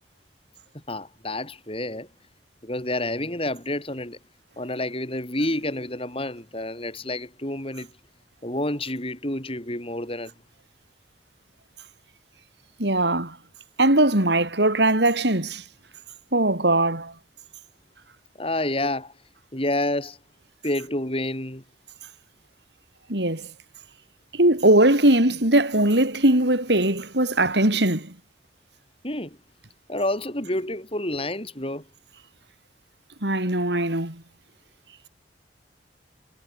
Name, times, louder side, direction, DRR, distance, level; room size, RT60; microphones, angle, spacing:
voice 1, 0.7-2.1 2.6-4.2 4.6-7.9 8.4-10.3 18.4-19.1 19.5-20.2 20.6-21.6 29.0-29.4 29.9-31.9, left 1 dB, 30° left, 6.5 m, -29 dB
voice 2, 12.8-13.4 13.8-15.6 16.3-17.1 23.1-23.5 24.3-28.1 33.2-34.2, right 1 dB, 70° right, 5.1 m, -20 dB
head